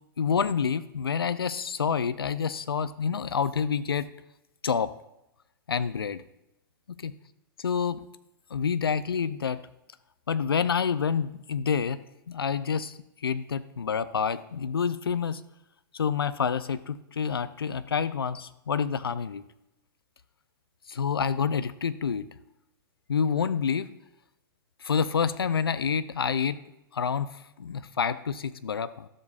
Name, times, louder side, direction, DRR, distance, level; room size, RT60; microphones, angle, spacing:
voice 1, 0.2-4.1 4.6-4.9 5.7-6.2 7.0-7.1 7.6-8.1 8.5-9.6 10.3-12.0 12.3-15.4 15.9-19.4 20.9-22.3 23.1-23.9 24.8-26.6 26.9-29.1, left 6 dB, 85° left, 14 dB, 0.4 m, -28 dB
12.5 x 7.4 x 2.4 m, 0.89 s
hypercardioid pair, 110°, 12 cm